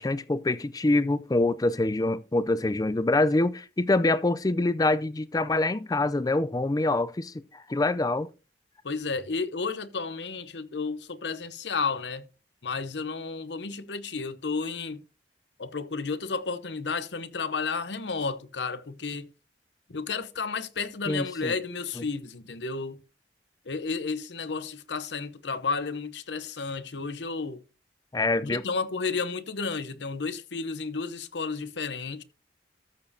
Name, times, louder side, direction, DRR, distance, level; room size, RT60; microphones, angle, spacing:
voice 1, 0.0-8.3 21.1-21.5 28.1-28.6, left 2 dB, 20° left, 0.4 m, -25 dB
voice 2, 8.8-12.2 12.6-15.0 15.6-19.3 19.9-23.0 23.7-27.6 28.4-32.2, left 4 dB, 85° left, 0.8 m, -32 dB
13.5 x 7.1 x 2.7 m
head